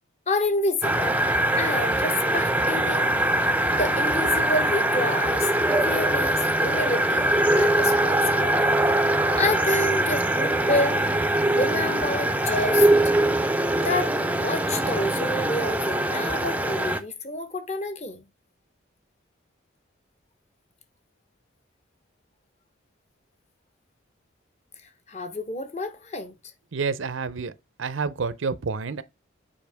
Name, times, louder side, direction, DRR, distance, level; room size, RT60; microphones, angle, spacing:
voice 1, 0.3-1.2 1.6-3.1 3.7-8.7 9.0-9.1 9.3-11.1 11.6-12.9 13.8-18.2 25.1-26.3, left 2 dB, 35° left, 1.0 m, -29 dB
sound 1, 0.8-17.0, right 1 dB, 10° right, 0.5 m, -22 dB
voice 2, 26.7-27.5 27.8-29.0, right 5 dB, 80° right, 0.6 m, -28 dB
7.2 x 4.9 x 3.4 m
head